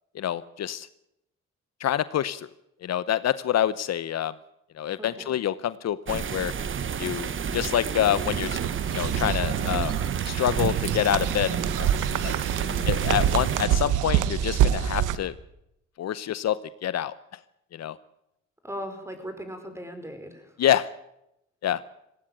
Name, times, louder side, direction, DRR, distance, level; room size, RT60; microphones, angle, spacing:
voice 1, 0.1-0.9 1.8-2.5 2.8-4.3 4.8-6.5 7.0-8.6 8.9-9.9 10.2-11.9 12.2-12.3 12.9-15.3 16.0-17.4 17.7-18.0 20.6-20.9 21.6-21.8, left 11 dB, 60° left, 16 dB, 0.8 m, -27 dB
voice 2, 5.0-5.3 12.5-12.9 18.6-20.5, equal, 10° right, 7 dB, 4.8 m, -38 dB
sound 1, 6.1-13.7, right 7 dB, 40° right, 1.1 m, -30 dB
sound 2, 8.4-15.2, right 10 dB, 85° right, 1.2 m, -26 dB
18.5 x 17.0 x 9.0 m, 0.84 s
cardioid pair, 90°, 30 cm